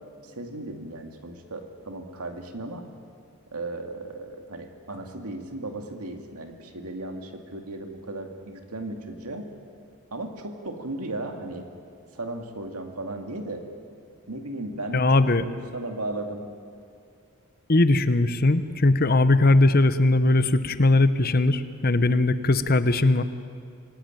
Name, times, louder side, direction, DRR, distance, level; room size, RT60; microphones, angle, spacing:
voice 1, 0.2-2.8 3.5-9.5 10.1-11.7 12.1-13.6 14.3-16.5, right 2 dB, 85° right, 4 dB, 2.4 m, -36 dB
voice 2, 14.9-15.4 17.7-23.2, left 2 dB, 40° left, 12 dB, 0.9 m, -20 dB
26.0 x 18.0 x 9.1 m, 2.2 s
head